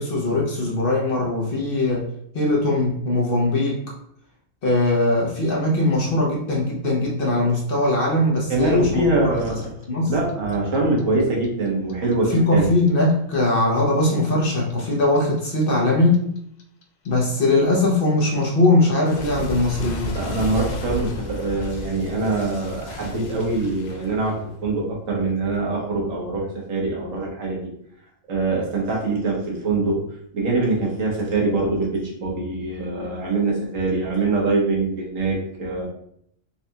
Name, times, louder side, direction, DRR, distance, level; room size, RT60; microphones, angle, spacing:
voice 1, 0.0-2.1 2.3-3.8 4.6-9.0 9.9-10.1 12.3-16.3 17.0-20.2, left 2 dB, 50° left, -3 dB, 0.8 m, -20 dB
voice 2, 8.5-9.7 10.0-12.7 20.1-24.4 24.6-27.7 28.3-30.0 30.3-35.9, right 2 dB, 80° right, -3 dB, 1.4 m, -23 dB
Clock, 9.4-12.4 12.6-15.6 15.9-24.8, left 1 dB, 80° left, 0.4 m, -33 dB
4.0 x 2.3 x 2.6 m, 0.70 s
omnidirectional pair, 1.3 m